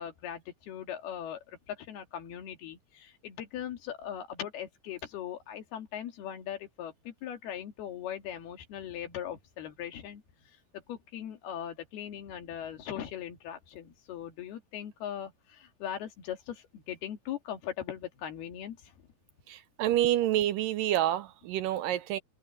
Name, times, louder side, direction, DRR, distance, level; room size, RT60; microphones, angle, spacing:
voice 1, 0.0-10.2 10.9-18.9, left 10 dB, 90° left, 4.2 m, -40 dB
voice 2, 19.5-22.2, right 13 dB, 80° right, 2.1 m, -28 dB
omnidirectional pair, 4.3 m